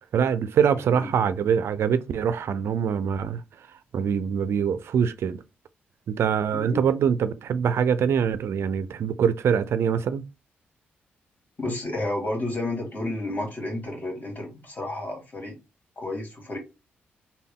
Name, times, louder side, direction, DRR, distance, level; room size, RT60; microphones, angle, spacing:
voice 1, 0.1-3.4 3.9-5.4 6.1-10.2, right 7 dB, 70° right, 0.3 m, -24 dB
voice 2, 11.6-15.6 16.0-16.6, left 1 dB, 40° left, 1.8 m, -31 dB
3.5 x 2.1 x 3.6 m
supercardioid pair, 55°, 5 cm